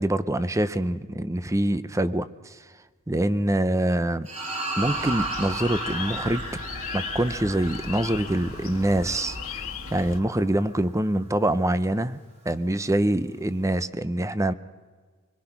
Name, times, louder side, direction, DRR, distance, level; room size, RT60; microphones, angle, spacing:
voice 1, 0.0-2.6 3.1-4.3 4.8-6.4 6.9-9.6 9.9-12.2 12.5-14.5, right 1 dB, 15° right, 14 dB, 0.6 m, -25 dB
sound 1, 4.2-10.8, right 2 dB, 30° right, 4.5 m, -34 dB
sound 2, 4.8-10.2, left 5 dB, 70° left, 1.5 m, -37 dB
26.0 x 21.5 x 5.9 m, 1.5 s
head